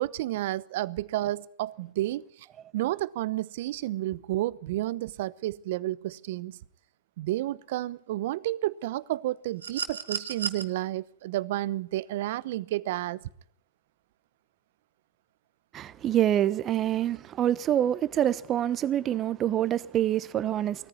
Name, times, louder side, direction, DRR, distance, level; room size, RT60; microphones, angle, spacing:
voice 1, 0.0-2.2 2.7-6.6 7.2-13.2, right 15 dB, 60° right, 0.9 m, -31 dB
sound 1, 9.6-10.6 12.1-12.3, right 6 dB, 85° right, 1.9 m, -33 dB
voice 2, 15.7-20.9, right 11 dB, 30° right, 1.1 m, -26 dB
20.0 x 14.5 x 9.7 m
hypercardioid pair, 115°, 0 cm